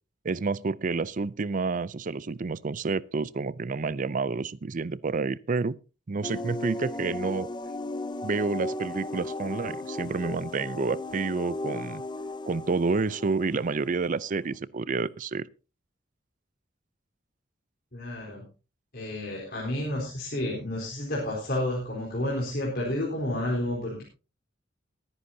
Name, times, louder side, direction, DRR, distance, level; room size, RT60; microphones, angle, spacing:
voice 1, 0.2-5.8 6.1-7.5 8.2-12.0 12.5-15.4, right 4 dB, 45° right, 0.5 m, -29 dB
sound 1, 6.2-14.6, left 2 dB, 25° left, 0.8 m, -36 dB
voice 2, 17.9-18.5 18.9-24.0, left 1 dB, 55° left, 4.1 m, -30 dB
22.5 x 9.9 x 2.8 m
head